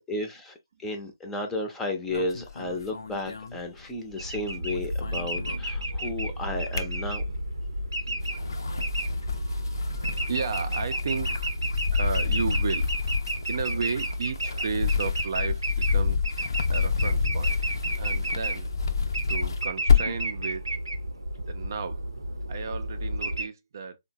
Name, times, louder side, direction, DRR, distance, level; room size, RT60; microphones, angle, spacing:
voice 1, 0.0-7.2, left 2 dB, 10° left, 0.6 m, -33 dB
sound 1, 2.1-4.3 4.5-6.1 6.5-7.6 8.1-20.3, left 5 dB, 60° left, 0.5 m, -28 dB
sound 2, 4.2-23.5, right 1 dB, 85° right, 0.7 m, -32 dB
voice 2, 9.1-11.4 11.9-12.9 13.5-16.2 16.7-17.6 18.0-18.7 19.3-20.6 21.5-22.1 22.5-24.0, right 5 dB, 50° right, 0.5 m, -34 dB
3.8 x 2.1 x 2.6 m
figure-of-eight pair, 145°, 2 cm